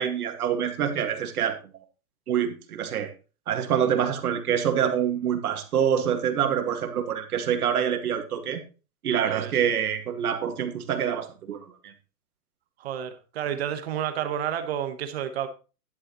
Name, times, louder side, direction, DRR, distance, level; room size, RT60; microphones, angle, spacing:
voice 1, 0.0-1.6 2.3-3.1 3.5-8.6 9.0-11.9, right 8 dB, 70° right, 2.0 m, -26 dB
voice 2, 9.3-9.6 12.8-15.5, right 9 dB, 40° right, 1.3 m, -30 dB
11.0 x 9.5 x 3.0 m
hypercardioid pair, 165°, 45 cm